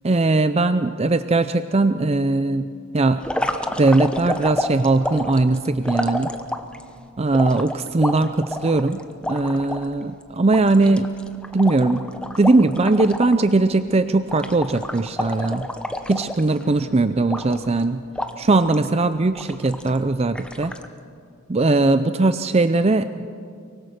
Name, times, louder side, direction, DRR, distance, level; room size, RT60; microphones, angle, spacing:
voice 1, 0.0-3.2 3.8-6.3 7.2-9.0 9.3-11.1 11.5-12.0 12.4-15.7 16.1-18.0 18.4-20.7 21.5-23.4, right 2 dB, 30° right, 11 dB, 0.5 m, -19 dB
sound 1, 3.2-6.8 7.3-9.9 10.2-10.3 10.5-13.5 13.7-13.9 14.3-16.8 17.3-17.8 18.2-18.9 19.4-20.0 20.4-20.9, left 1 dB, 5° left, 0.9 m, -29 dB
24.0 x 23.5 x 6.5 m, 2.3 s
head